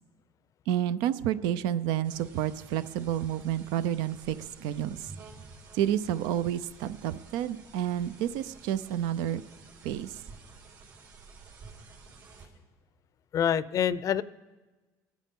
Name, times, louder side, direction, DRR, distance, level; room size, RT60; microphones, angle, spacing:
voice 1, 0.7-5.0 5.7-9.4 9.8-10.1, right 11 dB, 85° right, 14 dB, 0.5 m, -30 dB
sound 1, 2.0-12.5, right 4 dB, 70° right, 3.5 m, -51 dB
voice 2, 13.3-14.2, left 8 dB, 50° left, 17 dB, 0.5 m, -26 dB
25.0 x 9.9 x 3.7 m, 1.3 s
cardioid pair, 100°, 7 cm